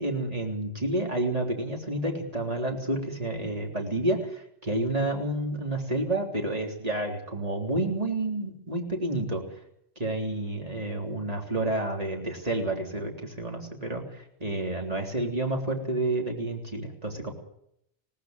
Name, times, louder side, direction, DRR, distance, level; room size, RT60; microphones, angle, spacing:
voice 1, 0.0-9.4 10.0-17.3, right 1 dB, 35° right, 1 dB, 3.6 m, -30 dB
20.5 x 18.5 x 7.9 m, 0.74 s
omnidirectional pair, 1.2 m